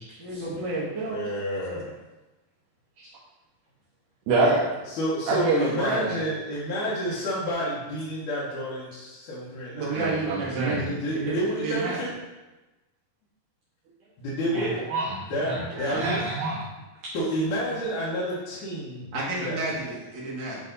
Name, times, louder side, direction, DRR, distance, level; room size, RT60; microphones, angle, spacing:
voice 1, 0.2-1.2 9.7-12.0 14.6-14.8 15.7-16.0 19.1-20.6, right 3 dB, 45° right, -5 dB, 1.6 m, -31 dB
voice 2, 1.0-1.9 4.9-10.2 10.7-12.1 14.2-14.8 15.3-16.2 17.1-19.8, equal, 65° left, -7 dB, 2.4 m, -30 dB
voice 3, 4.3-4.6 5.3-6.2 9.9-10.8 14.5-15.2 15.5-15.6 15.9-16.6, right 2 dB, 70° right, -5 dB, 2.2 m, -26 dB
9.8 x 3.3 x 4.0 m, 1.1 s
omnidirectional pair, 4.3 m